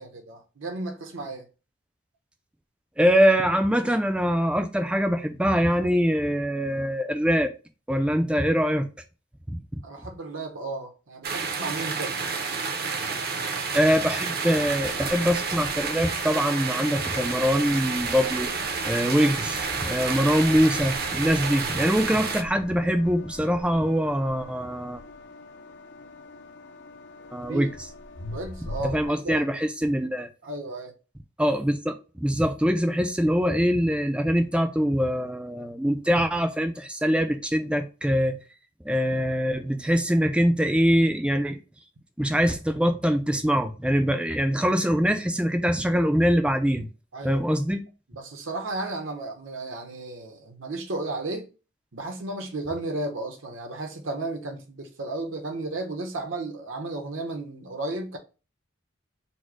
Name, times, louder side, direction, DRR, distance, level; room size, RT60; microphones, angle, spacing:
voice 1, 0.0-1.4 9.8-12.1 27.5-27.7 28.3-29.5 30.4-30.9 47.1-47.4 48.1-51.5 51.9-58.2, right 2 dB, 80° right, 1.0 m, -34 dB
voice 2, 3.0-7.5 7.9-8.9 9.5-9.6 13.7-18.5 18.8-25.0 27.3-27.7 28.8-30.3 31.4-38.4 38.8-41.6 42.2-46.9 47.2-47.8, equal, 5° right, 0.4 m, -23 dB
sound 1, 11.2-22.4, right 5 dB, 50° right, 0.6 m, -30 dB
sound 2, 14.5-29.1, left 2 dB, 60° left, 0.6 m, -43 dB
4.2 x 2.1 x 4.6 m
head